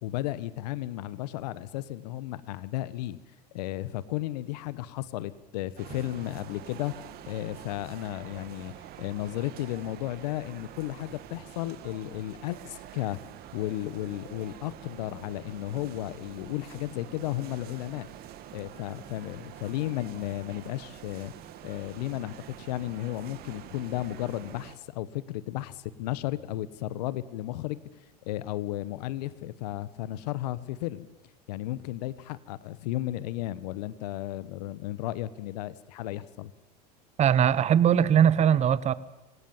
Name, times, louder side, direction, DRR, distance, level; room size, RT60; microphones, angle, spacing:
voice 1, 0.0-3.2 3.5-13.2 13.5-18.1 18.5-21.3 21.6-27.8 28.2-31.1 31.5-36.5, left 15 dB, 75° left, 17 dB, 1.2 m, -34 dB
sound 1, 5.8-24.8, right 11 dB, 50° right, 2.2 m, -46 dB
voice 2, 37.2-38.9, right 9 dB, 35° right, 17 dB, 1.1 m, -21 dB
25.5 x 17.5 x 7.3 m, 0.98 s
hypercardioid pair, 100°, 21 cm